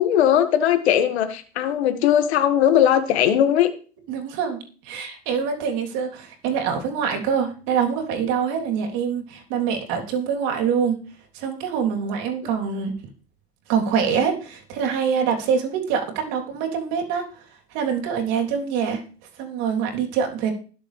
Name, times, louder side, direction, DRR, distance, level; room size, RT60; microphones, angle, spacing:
voice 1, 0.0-3.7, left 10 dB, 80° left, 8 dB, 2.0 m, -19 dB
voice 2, 4.1-4.6 4.8-11.0 11.3-12.9 13.7-17.3 17.7-19.0 19.4-20.5, right 7 dB, 60° right, 2 dB, 3.4 m, -24 dB
20.5 x 7.0 x 3.4 m, 0.40 s
hypercardioid pair, 100°, 32 cm